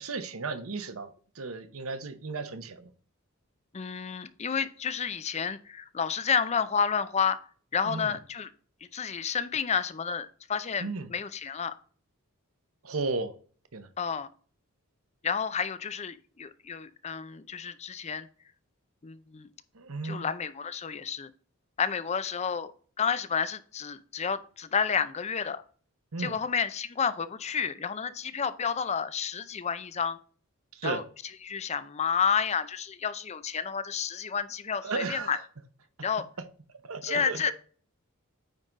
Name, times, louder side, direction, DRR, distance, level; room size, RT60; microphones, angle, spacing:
voice 1, 0.0-2.9 7.8-8.2 10.8-11.1 12.8-13.3 13.7-13.9 19.7-20.3 26.1-26.4 30.7-31.0 34.8-35.4 36.8-37.5, right 3 dB, 70° right, 10 dB, 0.9 m, -34 dB
voice 2, 3.7-7.4 7.7-8.5 8.9-11.8 14.0-14.3 15.2-18.3 19.0-19.5 20.0-21.3 21.8-22.7 23.0-25.6 26.2-30.2 30.8-31.0 31.4-35.4 36.0-36.3 37.0-37.5, left 6 dB, 30° left, 14 dB, 0.5 m, -30 dB
9.1 x 3.8 x 3.9 m, 0.43 s
head